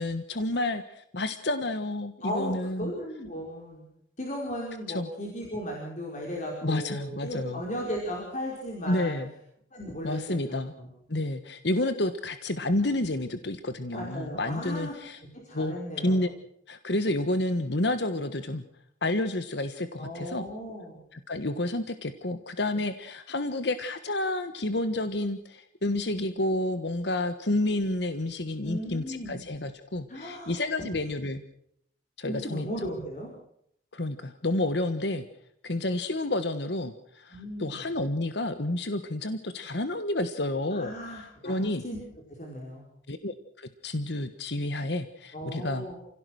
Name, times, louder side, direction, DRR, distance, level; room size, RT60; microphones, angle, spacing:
voice 1, 0.0-2.9 4.9-5.1 6.6-7.6 8.9-9.3 10.0-10.7 11.1-15.2 15.5-16.3 16.7-18.6 19.0-20.4 21.1-31.4 32.2-32.7 33.9-35.2 35.6-41.8 43.1-45.8, left 1 dB, 60° left, 10 dB, 1.4 m, -30 dB
voice 2, 2.2-3.8 4.2-9.2 9.7-10.4 10.8-10.9 13.9-14.9 15.3-16.2 20.0-21.0 28.6-29.4 30.1-31.0 32.3-33.3 37.3-37.8 40.7-42.0 42.4-42.9 45.3-46.0, equal, 40° left, -1 dB, 5.3 m, -36 dB
30.0 x 17.0 x 6.4 m, 0.72 s
head